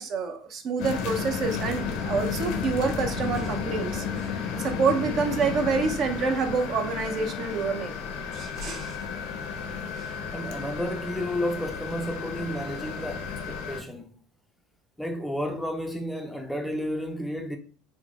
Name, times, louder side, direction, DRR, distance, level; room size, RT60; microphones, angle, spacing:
voice 1, 0.0-8.0 8.3-9.0 10.0-10.1, right 4 dB, 50° right, 0.6 m, -28 dB
sound 1, 0.8-13.8, left 6 dB, 65° left, 0.5 m, -33 dB
voice 2, 10.3-14.1 15.0-17.6, equal, 5° left, 0.4 m, -32 dB
3.8 x 2.0 x 2.9 m
supercardioid pair, 95°, 0 cm